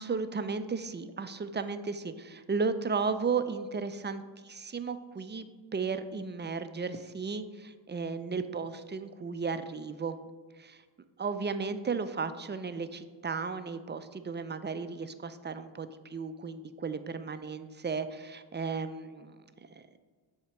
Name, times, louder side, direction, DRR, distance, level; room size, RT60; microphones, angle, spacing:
voice 1, 0.0-5.4 5.7-10.2 10.6-10.8 11.2-19.4 19.7-19.8, right 5 dB, 25° right, 11 dB, 0.4 m, -34 dB
7.4 x 2.9 x 5.6 m, 1.5 s
cardioid pair, 50°, 49 cm